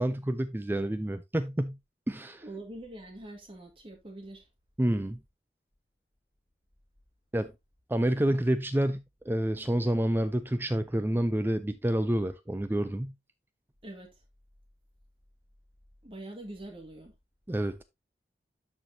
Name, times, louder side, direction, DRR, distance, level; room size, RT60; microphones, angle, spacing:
voice 1, 0.0-1.8 2.1-2.4 4.8-5.2 7.3-7.5 7.9-13.1 17.5-17.8, right 1 dB, 10° right, 0.4 m, -28 dB
voice 2, 2.4-4.4 13.8-14.1 16.0-17.1, right 1 dB, 30° right, 2.1 m, -44 dB
12.5 x 4.5 x 2.7 m
head